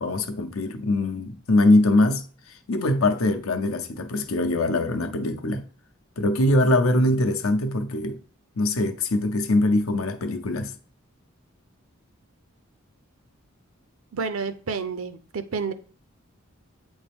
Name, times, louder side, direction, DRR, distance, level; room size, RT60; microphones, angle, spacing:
voice 1, 0.0-2.3 2.7-5.7 6.2-8.2 8.6-10.7, left 2 dB, 85° left, 0.7 m, -22 dB
voice 2, 14.1-15.7, right 5 dB, 80° right, 0.5 m, -30 dB
8.2 x 3.5 x 3.5 m
head